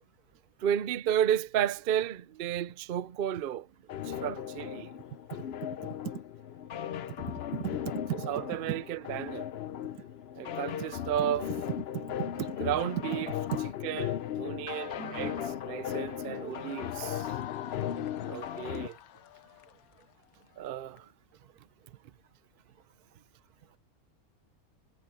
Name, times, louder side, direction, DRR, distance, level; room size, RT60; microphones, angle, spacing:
voice 1, 0.6-3.7 4.0-5.0 8.3-9.5 10.4-11.5 12.6-13.3 13.8-15.4 15.6-17.3 17.9-19.0 20.6-21.1, right 10 dB, 60° right, 0.6 m, -32 dB
sound 1, 3.9-18.9, left 10 dB, 55° left, 0.7 m, -37 dB
voice 2, 5.8-6.1 7.1-7.2 7.5-8.8 11.9-12.5 13.5-13.6 15.0-15.5, right 11 dB, 85° right, 1.5 m, -37 dB
sound 2, 16.3-21.0, left 12 dB, 75° left, 1.1 m, -47 dB
omnidirectional pair, 1.6 m